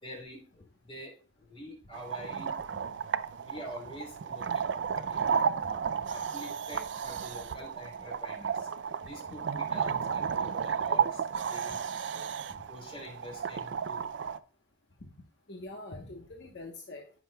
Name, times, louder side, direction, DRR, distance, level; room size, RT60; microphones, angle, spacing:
voice 1, 0.0-2.6 3.4-5.3 5.7-8.7 9.0-11.8 12.1-12.2 12.7-14.1, equal, 30° left, -1 dB, 3.4 m, -46 dB
sound 1, 1.9-14.4, right 6 dB, 70° right, 0.4 m, -33 dB
voice 2, 9.0-9.4 15.5-17.2, left 2 dB, 65° left, 1 dB, 1.1 m, -45 dB
14.5 x 6.2 x 2.3 m, 0.39 s
head